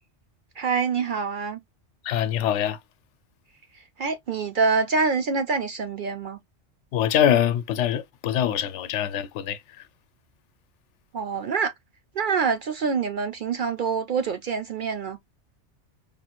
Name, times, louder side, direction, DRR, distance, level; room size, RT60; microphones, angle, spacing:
voice 1, 0.6-1.6 4.0-6.4 11.1-11.7 12.2-15.2, right 5 dB, 55° right, 0.6 m, -25 dB
voice 2, 2.1-2.8 6.9-9.6, left 10 dB, 75° left, 0.9 m, -23 dB
5.0 x 2.4 x 2.9 m
omnidirectional pair, 1.2 m